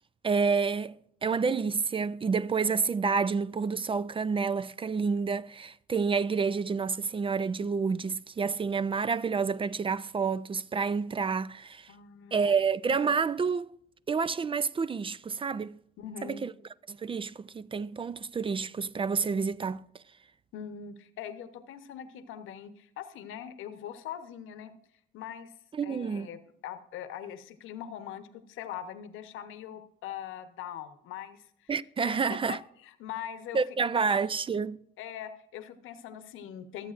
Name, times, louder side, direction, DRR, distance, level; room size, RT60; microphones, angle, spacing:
voice 1, 0.2-11.9 12.3-13.7 14.1-15.8 16.3-16.5 16.9-19.8 25.7-26.3 31.7-32.6 33.5-34.8, right 5 dB, 25° right, 0.4 m, -29 dB
voice 2, 11.9-12.4 16.0-16.4 20.5-24.7 25.1-25.5 25.8-31.7 32.0-33.6 34.0-34.1 35.0-36.9, left 9 dB, 90° left, 0.9 m, -42 dB
23.0 x 8.1 x 2.5 m
cardioid pair, 90°, 20 cm